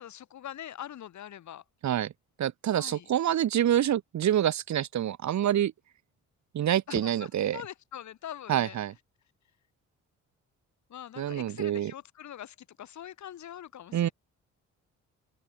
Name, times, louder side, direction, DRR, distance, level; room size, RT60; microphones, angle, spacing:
voice 1, 0.0-1.6 2.7-3.1 6.9-8.8 10.9-14.1, left 10 dB, 70° left, 6.6 m, -43 dB
voice 2, 2.4-5.7 6.5-7.6 8.5-8.9 11.2-11.9 13.9-14.1, right 11 dB, 65° right, 3.0 m, -27 dB
open air
cardioid pair, 90°, 30 cm